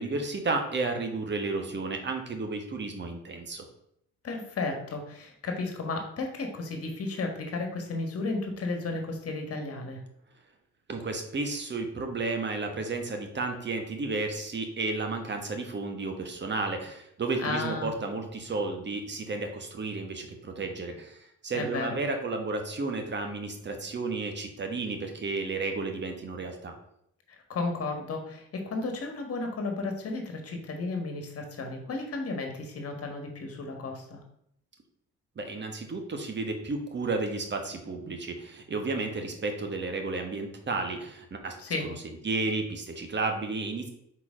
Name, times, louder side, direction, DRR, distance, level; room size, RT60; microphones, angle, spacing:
voice 1, 0.0-3.6 10.9-26.7 35.4-41.6 41.8-41.9 42.2-43.9, right 3 dB, 35° right, 4 dB, 1.3 m, -32 dB
voice 2, 4.2-10.0 17.4-17.9 21.5-22.0 27.5-34.2 41.6-41.9, left 3 dB, 50° left, 3 dB, 1.5 m, -33 dB
4.6 x 4.0 x 5.0 m, 0.74 s
cardioid pair, 90°, 30 cm